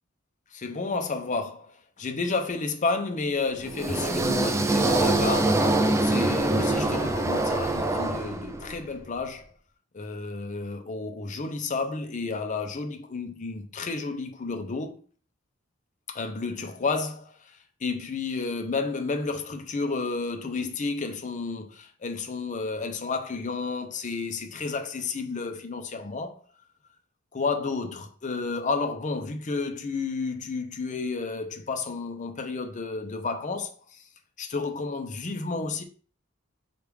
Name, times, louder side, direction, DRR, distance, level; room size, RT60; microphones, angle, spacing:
voice 1, 0.5-5.7 6.0-9.5 9.9-15.0 16.1-17.5 17.8-26.4 27.3-33.7 34.4-35.8, left 4 dB, 40° left, 0.6 m, -31 dB
sound 1, 3.6-8.8, right 2 dB, 15° right, 0.4 m, -24 dB
4.6 x 2.4 x 3.4 m
head